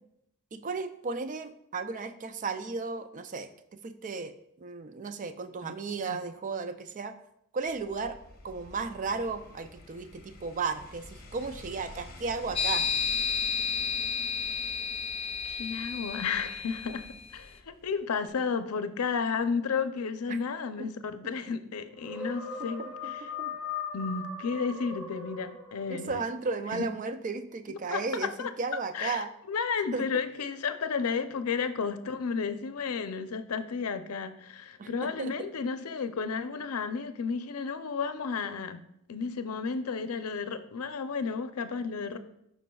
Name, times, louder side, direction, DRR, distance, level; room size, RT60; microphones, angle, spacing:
voice 1, 0.5-3.5 3.8-4.3 4.6-7.1 7.5-8.2 8.4-12.9 20.3-20.4 20.8-20.9 22.6-22.7 23.0-23.5 25.9-29.3 29.9-30.1 34.8-35.5, right 4 dB, 35° right, 9 dB, 0.4 m, -34 dB
sound 1, 7.7-18.0 18.3-18.4, left 1 dB, 45° left, 1.1 m, -50 dB
sound 2, 12.6-17.2, left 6 dB, 25° left, 0.4 m, -31 dB
voice 2, 15.4-17.1 17.3-23.3 23.9-26.2 26.7-26.9 27.9-28.5 28.9-38.8 39.1-42.2, left 5 dB, 85° left, 10 dB, 0.6 m, -32 dB
sound 3, 22.0-26.1, left 5 dB, 5° right, 2.8 m, -39 dB
12.5 x 5.1 x 2.3 m, 0.77 s
head